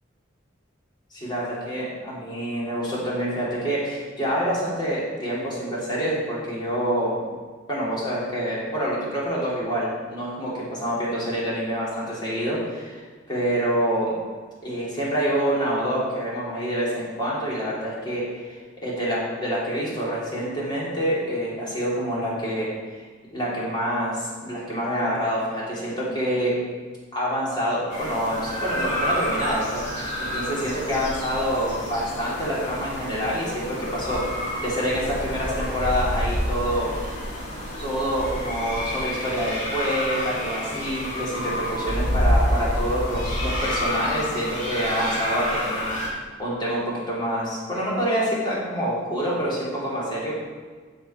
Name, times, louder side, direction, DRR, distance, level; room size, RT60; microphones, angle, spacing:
voice 1, 1.1-7.2 7.7-13.0 13.3-14.1 14.6-23.0 23.3-26.5 27.1-36.9 37.8-45.9 46.4-50.3, equal, 25° left, -7 dB, 3.3 m, -27 dB
sound 1, 27.9-46.1, equal, 40° left, 2.9 m, -28 dB
15.0 x 5.5 x 4.5 m, 1.5 s
head